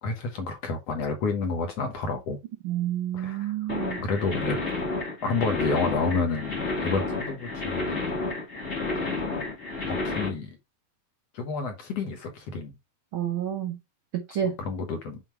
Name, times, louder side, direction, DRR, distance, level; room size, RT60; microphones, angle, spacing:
voice 1, 0.0-2.4 3.1-3.5 4.0-4.6 5.2-8.0 9.0-9.3 9.9-10.6 11.3-12.7 14.6-15.2, left 4 dB, 60° left, 1.9 m, -30 dB
voice 2, 2.6-4.0 13.1-13.8 14.1-14.6, right 10 dB, 85° right, 1.1 m, -29 dB
sound 1, 3.7-10.3, left 3 dB, 20° left, 1.5 m, -30 dB
7.5 x 3.1 x 4.6 m
omnidirectional pair, 3.9 m